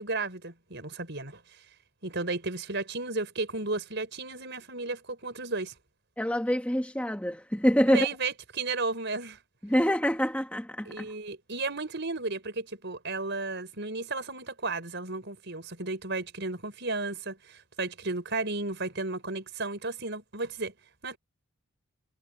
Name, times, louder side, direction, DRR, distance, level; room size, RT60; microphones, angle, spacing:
voice 1, 0.0-1.4 2.0-5.7 7.9-9.4 10.9-20.7 21.0-21.2, right 3 dB, 55° right, 5.7 m, -33 dB
voice 2, 6.2-8.1 9.6-11.0, equal, 5° left, 1.5 m, -26 dB
head